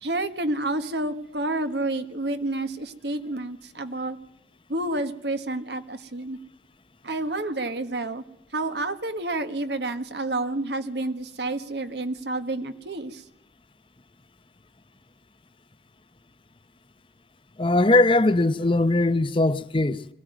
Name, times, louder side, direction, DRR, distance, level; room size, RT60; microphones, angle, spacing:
voice 1, 0.0-4.2 4.7-6.4 7.0-8.2 8.5-13.2, right 2 dB, 70° right, 1.5 m, -29 dB
voice 2, 17.6-20.1, left 2 dB, 30° left, 0.7 m, -20 dB
22.0 x 15.5 x 9.3 m
head